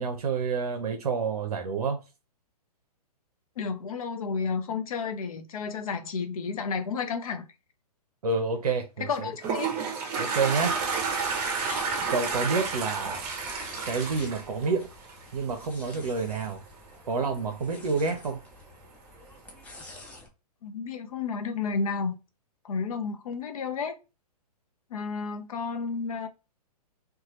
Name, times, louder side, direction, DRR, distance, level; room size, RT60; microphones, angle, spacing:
voice 1, 0.0-2.0 8.2-9.3 10.2-10.7 12.1-13.2 13.8-14.9 15.3-16.6 17.1-18.4, right 4 dB, 70° right, 0.6 m, -28 dB
voice 2, 3.6-7.5 9.1-9.7 20.6-22.1 22.6-23.9 24.9-26.3, left 5 dB, 60° left, 0.6 m, -31 dB
Toilet flush, 9.1-15.4, right 5 dB, 30° right, 0.7 m, -30 dB
sound 1, 10.5-20.3, left 2 dB, 5° left, 0.4 m, -47 dB
2.7 x 2.2 x 2.9 m
figure-of-eight pair, 120°, 20 cm